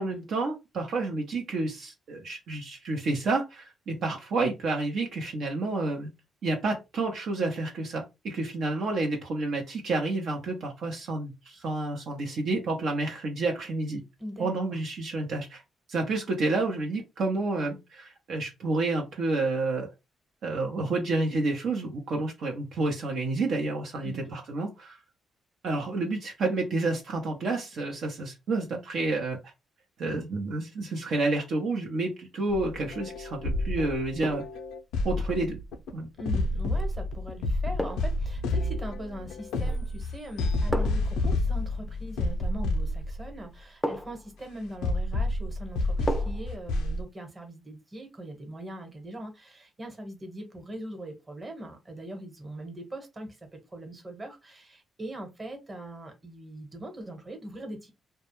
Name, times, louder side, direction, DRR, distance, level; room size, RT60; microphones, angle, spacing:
voice 1, 0.0-6.1 6.4-14.0 14.4-15.6 15.9-19.9 20.4-25.0 25.6-29.4 30.0-34.4 35.0-35.6 35.9-36.1, right 3 dB, 65° right, 0.7 m, -29 dB
voice 2, 14.2-14.6 24.0-24.3 36.2-57.9, right 1 dB, 30° right, 1.1 m, -41 dB
sound 1, 32.5-35.9 36.2-43.4 44.1-44.2 44.8-47.0, left 2 dB, 90° left, 0.4 m, -29 dB
sound 2, 32.6-33.0 34.2-34.6 36.7-36.9 37.8-38.2 39.6-40.0 40.7-41.2 42.8-42.9 43.8-44.3 46.1-46.5 46.9-47.0, equal, 5° left, 0.5 m, -34 dB
2.2 x 2.1 x 3.0 m
cardioid pair, 75°, 0 cm